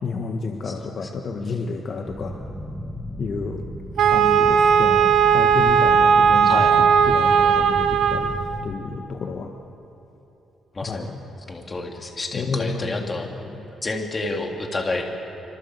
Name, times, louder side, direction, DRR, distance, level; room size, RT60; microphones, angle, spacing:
voice 1, 0.0-2.4 3.2-3.7 4.1-8.3 8.6-9.5 10.7-11.2 12.3-13.6, left 4 dB, 45° left, 3 dB, 1.6 m, -30 dB
voice 2, 0.6-1.1 6.4-6.8 10.7-11.1 11.5-13.3 13.8-15.0, left 2 dB, 25° left, 2 dB, 3.2 m, -29 dB
sound 1, 2.1-8.7, equal, 5° right, 2.1 m, -34 dB
Wind instrument woodwind instrument, 4.0-8.5, right 7 dB, 70° right, 1.3 m, -17 dB
26.0 x 25.5 x 8.3 m, 2.9 s
cardioid pair, 130°, 0 cm